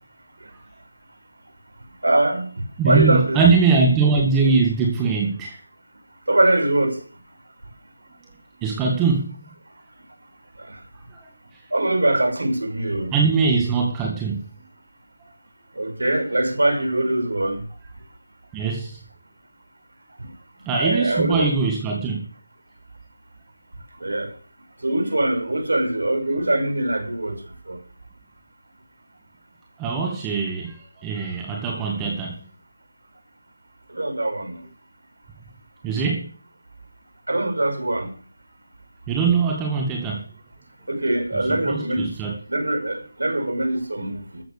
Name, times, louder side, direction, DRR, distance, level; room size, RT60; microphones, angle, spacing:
voice 1, 2.0-2.5 2.9-3.4 6.3-7.0 10.6-10.8 11.7-13.1 15.8-17.6 20.8-21.5 24.0-24.3 24.8-27.4 27.7-27.8 33.9-34.6 37.3-38.1 40.9-42.1 42.5-44.4, right 1 dB, 80° right, 5.8 m, -22 dB
voice 2, 2.8-5.6 8.6-9.3 13.1-14.4 18.5-19.0 20.7-22.3 29.8-32.4 35.8-36.3 39.1-40.2 41.3-42.4, right 4 dB, 10° right, 1.9 m, -21 dB
14.0 x 7.8 x 6.6 m
figure-of-eight pair, 165°, 0 cm